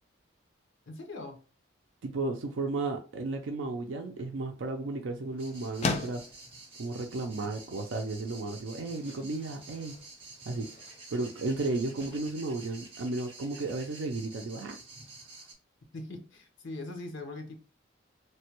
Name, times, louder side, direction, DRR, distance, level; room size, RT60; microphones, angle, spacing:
voice 1, 0.9-1.4 15.9-17.6, left 2 dB, 70° left, 0.8 m, -41 dB
voice 2, 2.0-6.2 6.8-9.9 10.5-10.7 11.1-14.8, right 3 dB, 70° right, 0.4 m, -34 dB
sound 1, 3.8-13.5, left 4 dB, 35° left, 0.4 m, -42 dB
sound 2, 5.4-15.5, right 3 dB, 30° right, 1.0 m, -50 dB
3.2 x 2.2 x 2.9 m
head